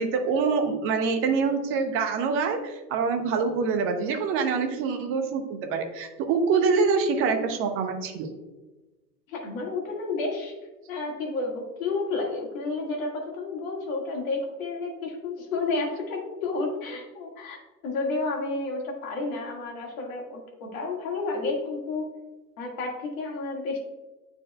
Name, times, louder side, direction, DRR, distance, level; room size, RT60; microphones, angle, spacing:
voice 1, 0.0-8.3, right 5 dB, 25° right, 7 dB, 0.7 m, -25 dB
voice 2, 9.3-10.5 10.9-17.6 17.8-22.1 22.6-23.8, left 3 dB, 55° left, 0 dB, 1.8 m, -31 dB
9.7 x 4.4 x 2.2 m, 1.1 s
figure-of-eight pair, 85°, 49 cm